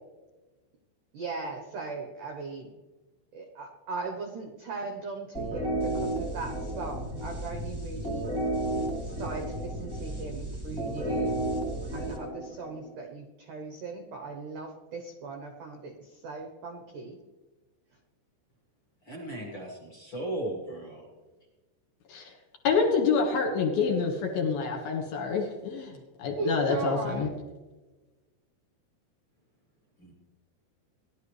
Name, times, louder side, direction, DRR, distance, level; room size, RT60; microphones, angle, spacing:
voice 1, 1.1-2.8 3.3-8.3 9.0-11.4 11.9-17.2 26.4-27.3, right 4 dB, 90° right, 3 dB, 1.8 m, -38 dB
sound 1, 5.3-13.0, right 1 dB, 35° right, 0.3 m, -32 dB
voice 2, 19.1-21.0 30.0-30.1, right 1 dB, 45° left, -2 dB, 1.6 m, -36 dB
voice 3, 22.6-27.3, left 5 dB, 65° left, 1 dB, 2.9 m, -27 dB
18.0 x 12.0 x 3.3 m, 1.2 s
omnidirectional pair, 5.5 m